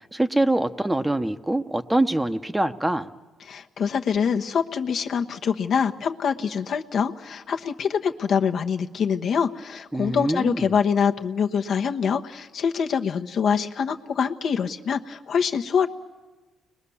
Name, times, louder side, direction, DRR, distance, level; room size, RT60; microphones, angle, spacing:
voice 1, 0.1-3.1 9.9-10.7, right 1 dB, 10° right, 9 dB, 0.9 m, -24 dB
voice 2, 3.5-15.9, left 6 dB, 60° left, 5 dB, 1.1 m, -25 dB
30.0 x 21.5 x 7.1 m, 1.2 s
cardioid pair, 90°, 0 cm